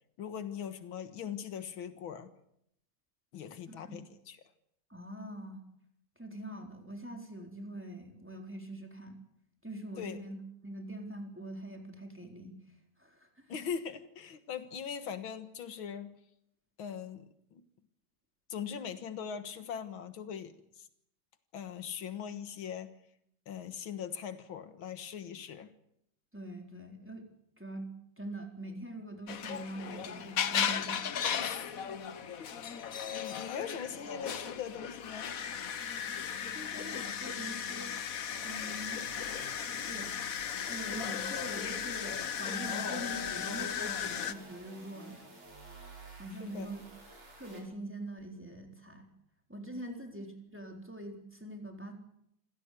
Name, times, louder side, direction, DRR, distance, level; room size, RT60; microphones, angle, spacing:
voice 1, 0.2-2.3 3.3-4.4 10.0-10.2 13.5-16.1 16.8-17.6 18.5-20.9 21.5-22.9 23.5-25.7 31.4-31.8 32.4-35.4 46.4-46.7 49.7-50.0, left 7 dB, 85° left, 11 dB, 2.2 m, -41 dB
voice 2, 4.9-5.6 6.2-9.2 9.6-10.4 10.6-12.6 13.0-13.5 26.3-27.2 27.6-27.9 28.2-31.0 36.5-38.0 38.4-39.1 39.8-40.2 40.7-45.2 46.2-46.9 47.4-49.1 49.5-51.9, right 1 dB, 5° right, 3 dB, 3.8 m, -43 dB
sound 1, 29.3-44.3, left 8 dB, 50° left, 1.3 m, -36 dB
sound 2, 38.2-47.6, right 2 dB, 80° right, 6.5 m, -52 dB
27.0 x 16.0 x 8.4 m, 0.76 s
omnidirectional pair, 2.2 m